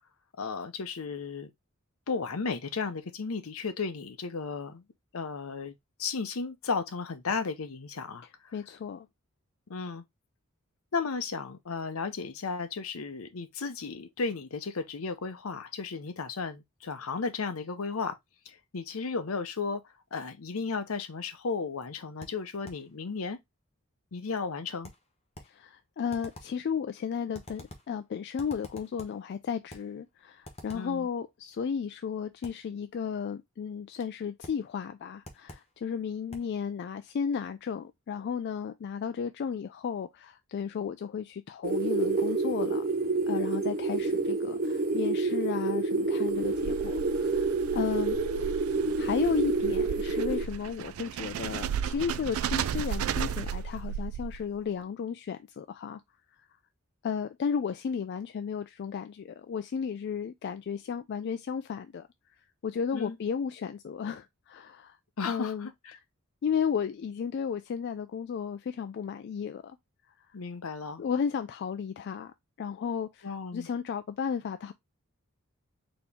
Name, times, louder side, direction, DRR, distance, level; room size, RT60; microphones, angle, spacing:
voice 1, 0.4-1.5 2.1-4.8 5.1-5.7 6.0-8.5 9.7-10.0 10.9-18.1 18.5-23.4 24.1-24.9 30.7-31.1 62.9-63.2 65.2-66.0 70.3-71.0 73.2-73.7, left 4 dB, 75° left, 0.7 m, -34 dB
voice 2, 8.5-9.1 25.5-42.8 43.3-48.2 49.0-56.0 57.0-62.1 62.6-65.0 65.2-65.7 66.4-69.8 71.0-74.7, left 7 dB, 50° left, 0.3 m, -34 dB
sound 1, 22.2-22.9 24.8-25.6 26.1-26.6 27.3-28.0 28.4-29.3 29.7-30.0 30.4-31.0 32.4-32.7 34.4-34.7 35.2-35.8 36.3-36.6, left 1 dB, 30° left, 1.0 m, -48 dB
sound 2, 41.6-50.4, right 3 dB, 45° right, 0.7 m, -28 dB
sound 3, 46.3-54.6, right 8 dB, 70° right, 0.3 m, -35 dB
4.2 x 2.9 x 3.4 m
head